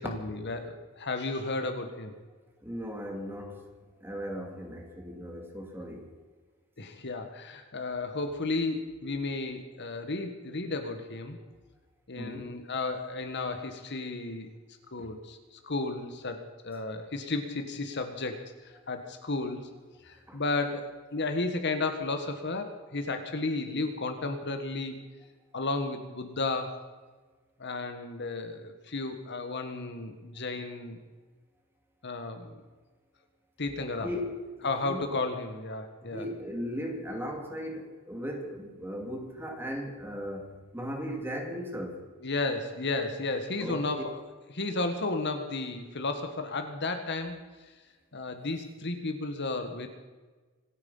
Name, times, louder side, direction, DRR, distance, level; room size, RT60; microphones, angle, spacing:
voice 1, 0.0-2.1 6.8-11.4 12.1-14.5 14.9-19.7 20.0-25.0 25.5-26.8 27.6-31.0 32.0-32.6 33.6-34.1 34.6-36.3 42.2-44.1 44.5-47.4 47.6-47.7 48.1-49.9, left 3 dB, 55° left, 7 dB, 1.6 m, -33 dB
voice 2, 2.6-3.7 4.0-6.1 12.2-12.5 15.0-15.1 20.3-20.4 34.0-35.1 36.0-42.0 43.6-43.9, equal, 10° right, 3 dB, 2.5 m, -37 dB
26.0 x 9.4 x 5.6 m, 1.3 s
head